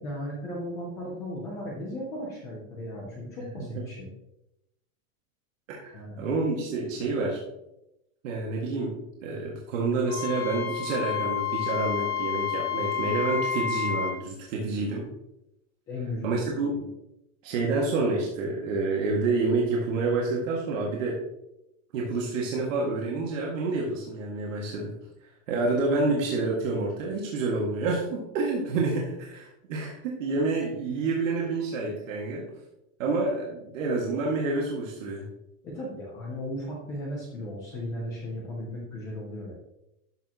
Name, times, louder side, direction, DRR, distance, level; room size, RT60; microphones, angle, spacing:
voice 1, 0.0-4.1 5.9-6.2 15.9-16.4 35.6-39.5, left 1 dB, 10° left, -2 dB, 0.3 m, -36 dB
voice 2, 5.7-7.4 8.2-15.0 16.2-16.7 17.4-21.2 21.9-24.9 25.5-32.5 33.0-35.3, right 3 dB, 65° right, -3 dB, 1.9 m, -28 dB
Wind instrument woodwind instrument, 10.1-14.2, left 7 dB, 50° left, 1.4 m, -30 dB
12.0 x 6.2 x 2.9 m, 0.87 s
supercardioid pair, 175°, 41 cm